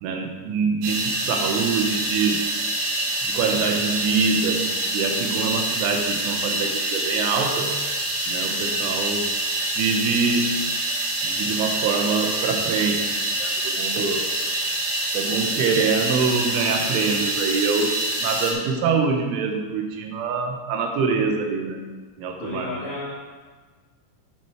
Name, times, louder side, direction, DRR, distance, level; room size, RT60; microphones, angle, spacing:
voice 1, 0.0-2.5 3.2-4.7 4.9-7.7 8.3-9.3 9.8-10.5 11.2-14.3 15.1-21.8 22.2-22.7, right 5 dB, 80° right, 3 dB, 3.4 m, -25 dB
sound 1, 0.8-18.5, right 2 dB, 65° right, 4.0 m, -26 dB
voice 2, 22.4-23.1, left 2 dB, 90° left, -4 dB, 1.8 m, -32 dB
8.9 x 7.7 x 4.4 m, 1.4 s
omnidirectional pair, 5.5 m